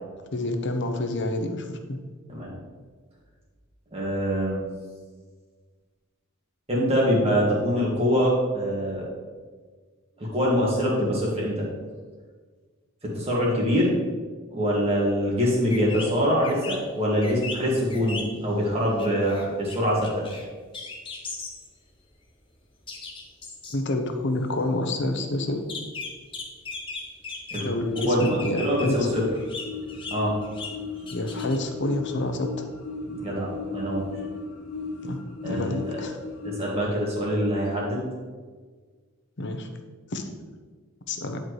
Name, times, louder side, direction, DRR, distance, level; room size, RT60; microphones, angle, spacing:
voice 1, 0.3-2.0 23.7-25.6 27.6-29.0 31.1-32.6 35.0-36.2 39.4-39.7 40.1-40.2 41.1-41.4, left 1 dB, 55° left, 5 dB, 0.7 m, -28 dB
voice 2, 3.9-4.7 6.7-9.1 10.2-11.7 13.1-13.9 14.5-20.2 27.5-27.6 28.1-29.2 30.1-30.4 31.0-31.1 33.0-34.2 35.4-36.0 36.4-38.0, equal, 25° right, -5 dB, 1.9 m, -24 dB
sound 1, 15.4-15.5 15.7-16.1 16.4-16.8 17.2-18.5 19.0-19.8 20.0-20.4 20.7-21.7 22.0-22.1 22.9-23.7 25.7-27.7 28.0-28.9 29.2-30.8 31.1-31.6, left 4 dB, 25° left, 0.9 m, -37 dB
sound 2, 27.7-36.8, left 4 dB, 85° left, 0.9 m, -36 dB
10.5 x 4.5 x 3.2 m, 1.5 s
head